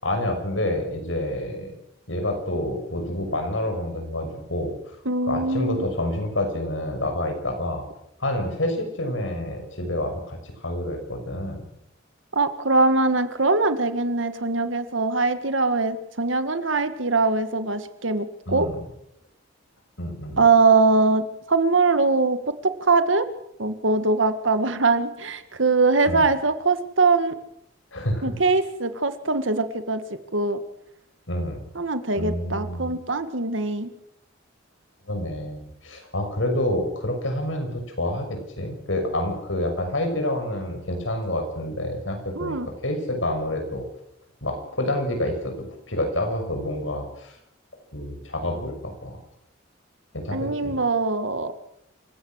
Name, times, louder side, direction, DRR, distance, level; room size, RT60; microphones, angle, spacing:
voice 1, 0.0-1.7 2.1-4.8 5.3-7.8 8.2-11.6 18.5-18.8 20.0-20.4 26.1-26.2 27.9-28.4 31.3-31.6 32.1-32.9 35.1-42.6 42.8-43.9 44.4-47.4 47.9-49.2 50.1-50.8, left 1 dB, 80° left, 5 dB, 6.5 m, -28 dB
voice 2, 5.1-5.8 12.3-18.7 20.4-23.3 23.6-27.3 28.2-30.0 30.3-30.6 31.8-33.9 42.4-42.7 50.3-51.5, right 3 dB, 75° right, 10 dB, 2.0 m, -22 dB
28.0 x 16.5 x 6.5 m, 0.78 s
head